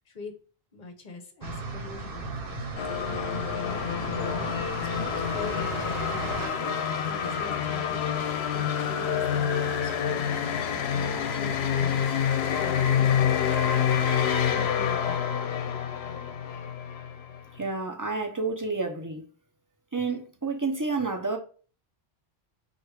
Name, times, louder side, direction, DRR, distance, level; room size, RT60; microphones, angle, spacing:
voice 1, 0.7-2.5 3.1-8.1 8.5-14.2 14.5-15.3, left 2 dB, 50° left, 0.9 m, -44 dB
sound 1, 1.4-6.5, right 2 dB, 60° right, 1.0 m, -35 dB
sound 2, 2.8-17.7, left 8 dB, 75° left, 0.8 m, -27 dB
voice 2, 17.5-19.2 19.9-21.4, right 3 dB, 25° right, 0.5 m, -30 dB
4.8 x 2.4 x 4.7 m
omnidirectional pair, 1.1 m